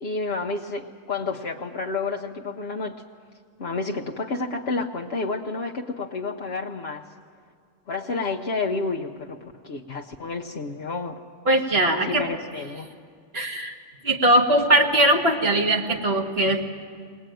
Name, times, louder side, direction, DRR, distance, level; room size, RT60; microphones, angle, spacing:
voice 1, 0.0-3.0 3.6-7.1 7.9-11.2 12.0-12.9, left 3 dB, 60° left, 1 dB, 1.1 m, -30 dB
voice 2, 11.5-12.2 13.3-13.7 14.0-16.6, right 1 dB, 55° right, 1 dB, 2.2 m, -20 dB
21.5 x 19.5 x 9.1 m, 2.2 s
omnidirectional pair, 1.2 m